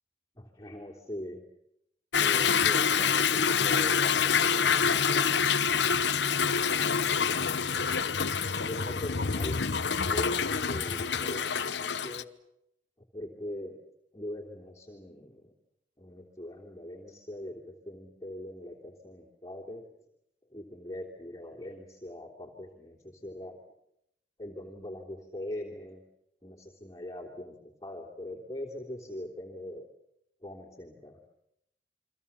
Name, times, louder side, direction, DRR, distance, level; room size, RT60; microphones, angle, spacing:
voice 1, 0.4-1.4 2.1-5.3 7.2-7.5 8.5-9.6 10.0-12.3 13.1-13.8 14.1-15.5 16.0-19.8 20.5-23.6 24.4-26.0 26.4-27.6 27.8-29.9 30.4-31.2, left 1 dB, 20° left, -3 dB, 3.3 m, -42 dB
Toilet flush / Drip / Trickle dribble, 2.1-12.2, left 6 dB, 75° left, 1.0 m, -26 dB
29.5 x 24.5 x 7.2 m, 0.78 s
head